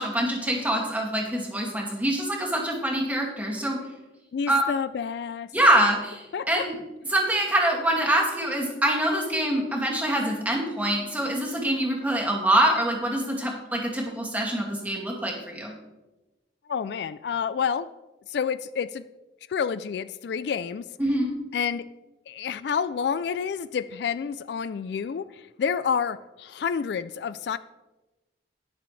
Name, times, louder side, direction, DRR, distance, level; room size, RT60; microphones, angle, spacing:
voice 1, 0.0-3.8 4.5-4.7 5.5-6.8 7.1-15.7 21.0-21.3, right 1 dB, 10° right, -1 dB, 2.1 m, -25 dB
voice 2, 4.3-5.5 6.3-6.7 16.7-17.9 18.3-19.0 19.5-20.8 21.5-21.9 22.3-25.3 25.6-27.6, left 6 dB, 65° left, 15 dB, 0.3 m, -29 dB
20.0 x 6.8 x 3.2 m, 1.1 s
head